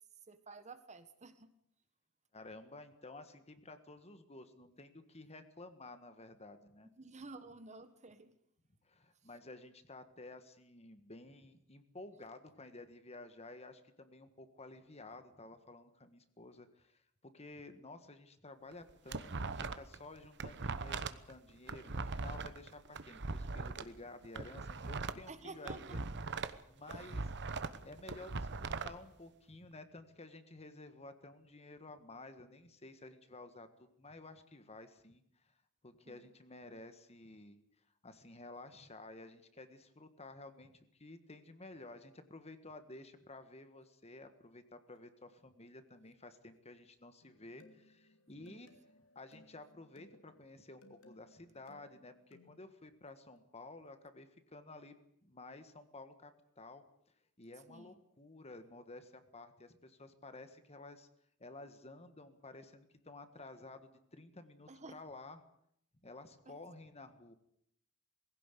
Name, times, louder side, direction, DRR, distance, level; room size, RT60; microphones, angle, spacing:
voice 1, 0.3-1.5 7.0-8.3 25.3-26.0 36.0-36.2 48.4-48.7 57.7-58.0 64.7-65.0 66.4-66.6, right 3 dB, 30° right, 10 dB, 1.4 m, -52 dB
voice 2, 2.3-6.9 8.8-26.0 26.7-27.3 27.8-35.2 35.8-37.6 38.0-48.7 49.1-55.0 55.2-56.3 56.6-56.8 57.4-61.1 61.4-65.4 66.0-67.3, left 2 dB, 30° left, 9 dB, 1.7 m, -53 dB
sound 1, 18.7-20.0 20.2-23.8 24.2-26.6 26.9-28.9, right 4 dB, 55° right, 1.1 m, -40 dB
sound 2, 47.2-52.7, left 1 dB, 70° left, 2.7 m, -64 dB
20.0 x 16.5 x 8.3 m, 0.70 s
head